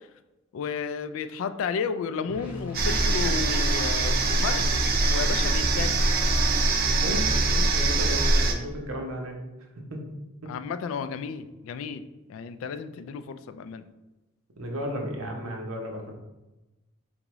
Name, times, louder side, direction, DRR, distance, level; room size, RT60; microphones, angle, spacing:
voice 1, 0.5-4.6 5.1-5.9 10.5-12.0 12.3-13.8, left 6 dB, 70° left, 12 dB, 0.3 m, -32 dB
sound 1, 2.3-7.5, left 3 dB, 10° right, 0.9 m, -39 dB
sound 2, 2.7-8.5, right 2 dB, 45° right, 0.4 m, -23 dB
voice 2, 7.0-9.4 9.9-10.0 10.4-10.5 14.6-16.1, equal, 80° right, 1 dB, 0.8 m, -34 dB
3.9 x 3.5 x 3.0 m, 1.0 s
head